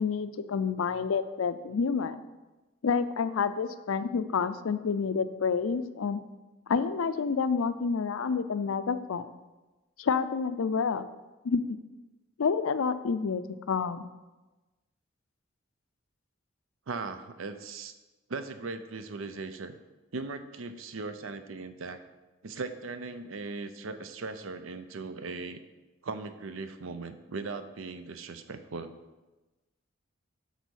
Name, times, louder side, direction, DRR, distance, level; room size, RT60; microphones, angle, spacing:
voice 1, 0.0-2.2 2.8-6.2 6.7-9.3 10.0-11.1 11.4-11.6 12.4-14.1, left 5 dB, 85° left, 12 dB, 0.4 m, -29 dB
voice 2, 16.9-17.9 18.3-19.8 20.1-22.0 22.4-25.6 26.0-28.9, right 3 dB, 75° right, 10 dB, 0.6 m, -38 dB
8.1 x 4.1 x 6.3 m, 1.1 s
head